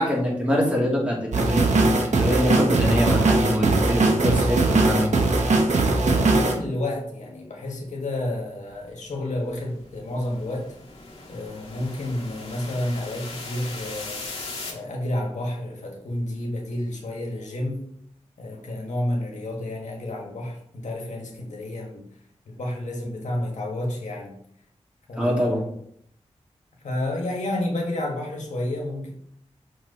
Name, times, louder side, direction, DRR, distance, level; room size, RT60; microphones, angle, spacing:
voice 1, 0.0-5.3 25.2-25.6, equal, 10° right, -4 dB, 2.6 m, -24 dB
sound 1, 1.3-6.5, right 3 dB, 80° right, 0.9 m, -20 dB
voice 2, 5.9-10.7 11.3-14.3 14.7-17.9 18.4-22.1 22.4-24.4 25.1-25.7 26.8-29.1, left 1 dB, 85° left, 0 dB, 1.4 m, -30 dB
sound 2, 8.7-14.7, left 3 dB, 50° left, 1.8 m, -39 dB
6.0 x 4.1 x 4.1 m, 0.69 s
wide cardioid pair, 60°, 12 cm